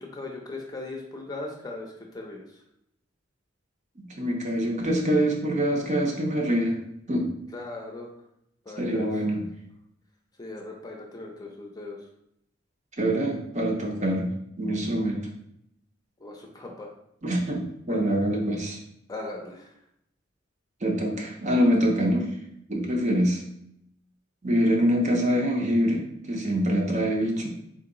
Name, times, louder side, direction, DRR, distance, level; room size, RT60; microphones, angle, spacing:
voice 1, 0.0-2.6 7.5-8.1 8.6-9.1 10.4-12.1 16.2-16.9 17.8-18.1 19.1-19.7, left 2 dB, 20° left, 0 dB, 0.6 m, -38 dB
voice 2, 4.0-6.8 7.1-7.3 8.8-9.4 13.0-14.3 14.6-15.3 17.2-18.8 20.8-22.3 22.7-23.4 24.4-27.5, equal, 40° right, 0 dB, 0.8 m, -25 dB
3.8 x 2.8 x 3.8 m, 0.75 s
head